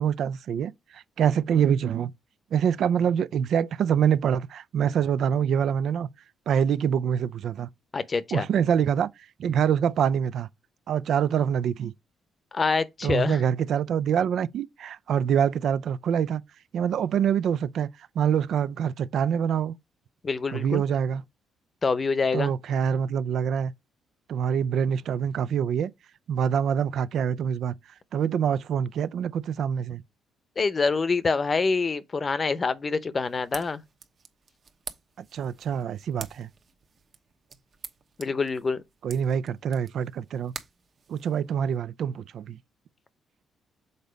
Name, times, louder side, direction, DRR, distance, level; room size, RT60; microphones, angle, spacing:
voice 1, 0.0-2.1 2.5-6.1 6.5-7.7 8.3-9.1 9.4-10.5 10.9-11.9 13.0-16.4 16.7-19.7 20.5-21.2 22.3-23.7 24.3-25.9 26.3-27.7 28.1-30.0 35.3-36.5 39.0-40.5 41.1-42.6, right 8 dB, 70° right, 0.4 m, -25 dB
voice 2, 7.9-8.5 12.5-13.4 20.2-20.8 21.8-22.5 30.6-33.8 38.2-38.8, left 4 dB, 35° left, 0.7 m, -26 dB
sound 1, 33.2-41.8, right 5 dB, 45° right, 1.0 m, -47 dB
6.7 x 4.0 x 5.1 m
cardioid pair, 90°, 0 cm